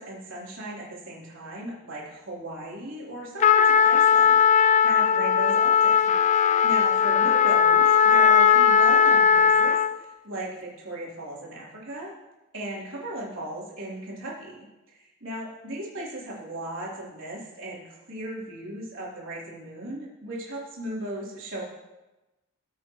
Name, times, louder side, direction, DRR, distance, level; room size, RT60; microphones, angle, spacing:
voice 1, 0.0-6.1 6.6-12.1 12.5-21.6, right 1 dB, 65° right, -5 dB, 3.5 m, -37 dB
Trumpet, 3.4-10.0, left 7 dB, 35° left, 0.3 m, -18 dB
18.5 x 8.3 x 3.1 m, 1.0 s
head